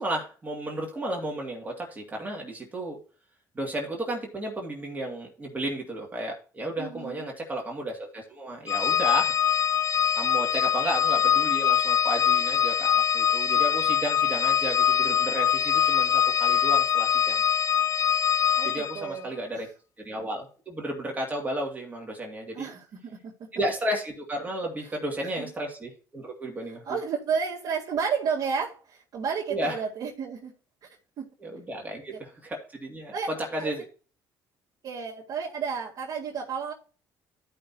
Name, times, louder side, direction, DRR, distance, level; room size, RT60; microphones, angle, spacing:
voice 1, 0.0-3.0 3.5-9.3 10.2-17.4 18.6-19.7 20.0-22.7 23.5-27.0 29.5-29.8 31.4-33.1 33.5-33.8, right 1 dB, 20° right, 2.1 m, -33 dB
voice 2, 6.8-7.3 18.6-19.6 22.5-23.5 25.2-25.5 26.8-30.5 30.8-30.9 31.2-31.3 32.1-32.2 33.1-33.8 34.8-36.7, right 6 dB, 55° right, 1.9 m, -32 dB
Organ, 8.7-19.1, left 9 dB, 40° left, 0.4 m, -23 dB
14.0 x 5.6 x 2.8 m
cardioid pair, 110°, 8 cm